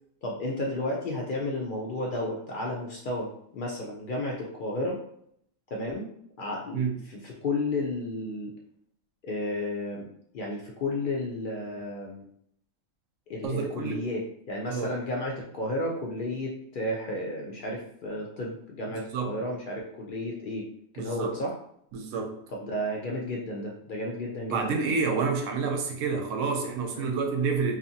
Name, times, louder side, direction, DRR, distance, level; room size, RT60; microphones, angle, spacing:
voice 1, 0.2-5.0 5.7-6.1 6.4-8.5 9.2-10.1 10.3-12.2 13.3-14.2 14.5-20.7 20.9-21.5 22.5-25.0 26.9-27.1, left 1 dB, 70° left, -2 dB, 0.4 m, -32 dB
voice 2, 13.4-14.0 14.7-14.9 18.9-19.3 21.0-21.4 21.9-22.4 24.5-27.8, right 5 dB, 75° right, 3 dB, 0.9 m, -29 dB
2.6 x 2.4 x 2.6 m, 0.68 s
omnidirectional pair, 1.4 m